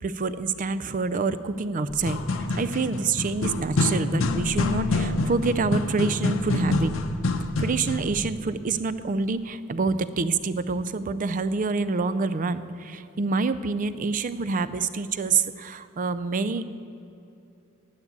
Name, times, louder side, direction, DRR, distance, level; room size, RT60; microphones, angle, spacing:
voice 1, 0.0-2.2 2.5-6.9 7.6-16.6, right 4 dB, 40° right, 14 dB, 0.4 m, -27 dB
sound 1, 1.9-8.2, left 2 dB, 75° left, 0.8 m, -26 dB
9.6 x 9.4 x 8.2 m, 2.8 s
head